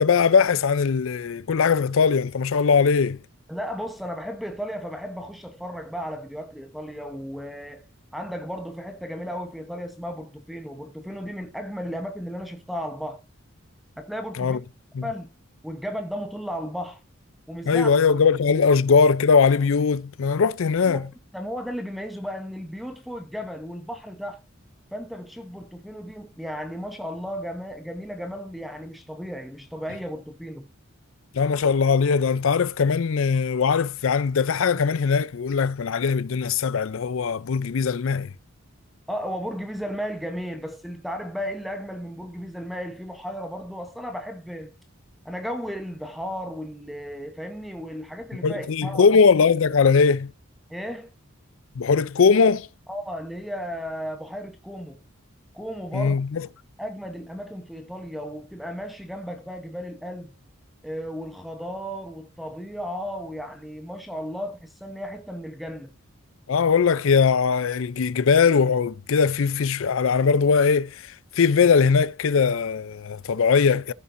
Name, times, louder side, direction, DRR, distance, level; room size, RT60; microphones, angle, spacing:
voice 1, 0.0-3.2 14.4-14.6 14.9-15.1 17.6-21.0 31.3-38.3 48.4-50.3 51.8-52.7 55.9-56.5 66.5-73.9, left 5 dB, 65° left, 0.5 m, -20 dB
voice 2, 3.5-7.8 8.1-13.2 14.0-14.6 15.0-15.3 15.6-17.0 17.5-17.9 20.9-21.0 21.3-24.4 24.9-30.7 39.1-44.7 45.2-49.1 50.7-51.1 52.9-55.0 55.5-56.1 56.8-60.3 60.8-65.9, equal, ahead, 0.8 m, -34 dB
14.5 x 7.0 x 2.6 m
head